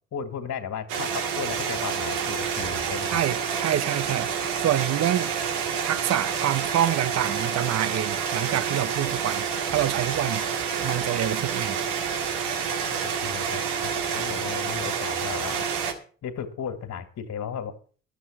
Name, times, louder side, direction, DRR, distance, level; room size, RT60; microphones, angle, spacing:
voice 1, 0.1-3.2 13.0-15.7 16.2-17.7, left 7 dB, 55° left, 1.9 m, -35 dB
sound 1, 0.9-15.9, right 7 dB, 80° right, 2.0 m, -28 dB
voice 2, 3.1-4.3 4.6-5.3 5.8-11.8, right 12 dB, 50° right, 0.8 m, -27 dB
12.5 x 7.3 x 7.4 m
hypercardioid pair, 50°, 33 cm